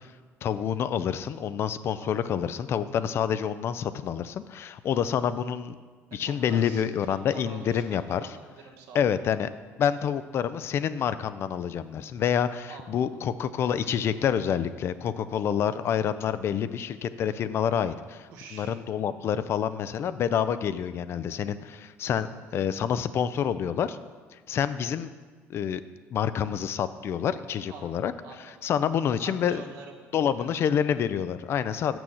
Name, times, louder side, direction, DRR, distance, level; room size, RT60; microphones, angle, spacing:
voice 1, 0.4-5.7 6.1-8.2 8.9-9.5 9.8-24.0 24.5-25.1 25.5-25.8 26.1-28.1 28.6-29.6 30.1-32.0, left 8 dB, 55° left, 13 dB, 0.4 m, -27 dB
voice 2, 6.2-9.4 12.7-13.1 18.3-18.8 19.0-19.1 22.3-22.7 27.7-28.7 29.1-30.5, right 5 dB, 85° right, 2 dB, 1.3 m, -47 dB
6.3 x 6.1 x 7.0 m, 1.5 s
cardioid pair, 105°, 5 cm